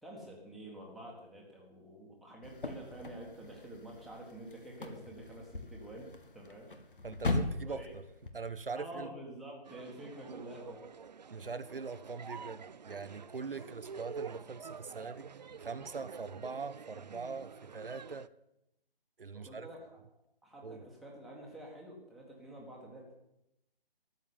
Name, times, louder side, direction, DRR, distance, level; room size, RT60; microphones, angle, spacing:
voice 1, 0.0-6.7 7.7-7.9 8.7-10.9 19.3-19.8 20.4-23.1, right 1 dB, ahead, -4 dB, 1.5 m, -48 dB
sound 1, 2.4-8.3, left 2 dB, 65° left, 1.7 m, -39 dB
voice 2, 7.0-8.0 8.3-9.1 11.3-15.3 15.6-18.3 19.2-19.7 20.6-20.8, right 4 dB, 70° right, 11 dB, 0.9 m, -42 dB
sound 2, 9.6-18.3, right 6 dB, 50° right, 0.4 m, -48 dB
13.0 x 7.2 x 9.6 m, 0.85 s
figure-of-eight pair, 140°, 29 cm